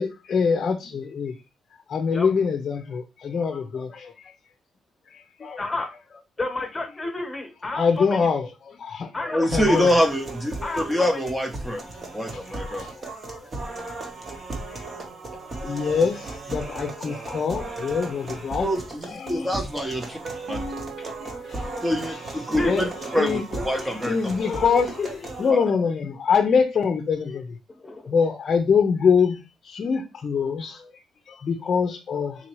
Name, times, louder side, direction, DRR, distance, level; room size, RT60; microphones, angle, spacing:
voice 1, 0.0-1.4 1.9-4.3 5.1-5.6 7.7-9.9 12.3-13.0 13.3-13.5 14.3-14.4 14.7-14.9 15.2-18.7 19.1-19.5 20.3-20.6 21.0-22.2 22.4-23.4 23.7-27.6 28.1-32.5, left 6 dB, 50° left, 4 dB, 0.5 m, -25 dB
voice 2, 5.6-5.9 6.4-8.0 9.1-9.9 10.6-11.2 22.6-22.8 27.8-28.1, left 2 dB, 20° left, 6 dB, 1.1 m, -30 dB
voice 3, 9.3-11.8 12.1-12.8 18.6-20.2 20.5-20.6 21.8-24.2, equal, 10° right, 3 dB, 0.7 m, -25 dB
sound 1, 9.5-25.5, right 2 dB, 40° right, 1.1 m, -36 dB
sound 2, 20.0-23.2, right 3 dB, 60° right, 0.8 m, -39 dB
3.9 x 2.7 x 3.0 m, 0.26 s
cardioid pair, 90°, 0 cm